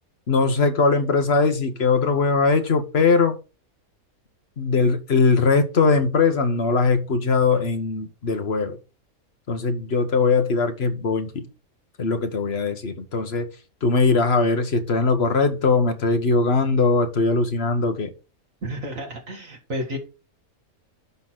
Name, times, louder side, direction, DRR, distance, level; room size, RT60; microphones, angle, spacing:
voice 1, 0.3-3.4 4.6-8.8 9.5-11.5 12.0-13.5 13.8-18.1, left 4 dB, 45° left, 1.6 m, -20 dB
voice 2, 18.6-20.0, equal, 60° right, 2.4 m, -31 dB
11.5 x 4.1 x 6.1 m
omnidirectional pair, 1.6 m